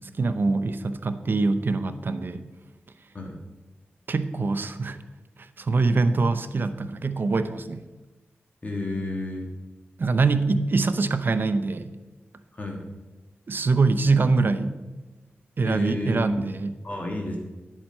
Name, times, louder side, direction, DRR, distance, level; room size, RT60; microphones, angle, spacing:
voice 1, 0.2-2.5 4.1-5.0 5.6-7.8 10.0-11.9 13.5-14.8 15.6-16.8, right 3 dB, 55° right, 10 dB, 0.6 m, -24 dB
voice 2, 8.6-9.5 12.5-12.8 15.6-17.4, left 2 dB, 35° left, 1 dB, 1.5 m, -31 dB
10.5 x 7.5 x 4.3 m, 1.2 s
wide cardioid pair, 90°, 4 cm